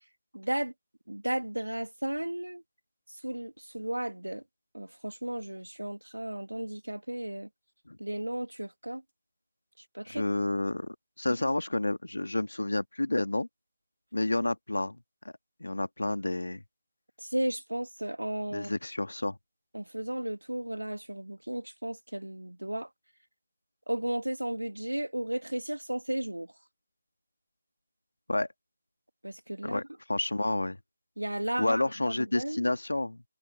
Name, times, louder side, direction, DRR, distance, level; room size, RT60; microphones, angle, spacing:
voice 1, 0.3-0.7 1.1-2.6 3.1-4.4 4.7-7.5 8.0-9.0 9.9-10.2 17.2-18.7 19.7-22.9 23.9-26.5 29.2-29.8 31.2-32.7, right 1 dB, 80° right, 2.9 m, -34 dB
voice 2, 10.1-13.5 14.1-15.0 15.2-15.3 15.6-16.6 18.5-19.4 28.3-28.5 29.6-29.8 30.1-30.8 31.6-33.2, left 2 dB, 75° left, 2.0 m, -30 dB
figure-of-eight pair, 150°, 0 cm